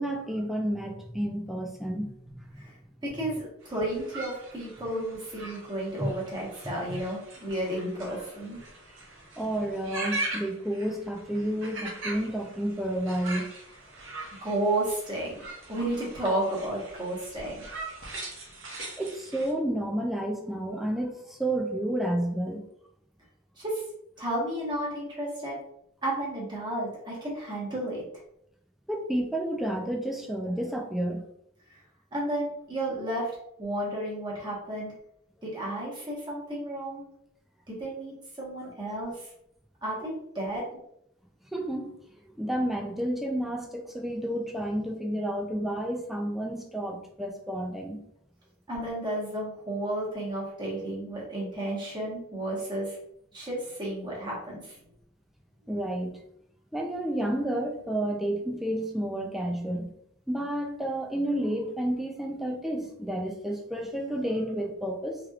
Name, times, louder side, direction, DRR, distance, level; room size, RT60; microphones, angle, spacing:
voice 1, 0.0-2.6 6.0-6.1 6.9-7.0 9.4-13.5 19.0-22.6 28.9-31.2 32.9-33.1 41.5-41.9 42.3-48.0 55.7-56.2 56.7-59.9 60.3-65.2, right 1 dB, ahead, 1 dB, 0.3 m, -30 dB
voice 2, 3.0-8.6 14.4-15.4 15.7-17.6 23.6-23.8 24.2-25.6 26.0-28.0 31.7-31.8 32.1-33.3 33.6-34.9 35.4-37.0 37.7-39.3 39.8-40.6 48.7-53.0 53.3-54.8, right 1 dB, 20° right, -5 dB, 1.1 m, -32 dB
sound 1, 3.6-19.5, right 2 dB, 65° right, 0.9 m, -41 dB
3.3 x 3.0 x 2.4 m, 0.75 s
head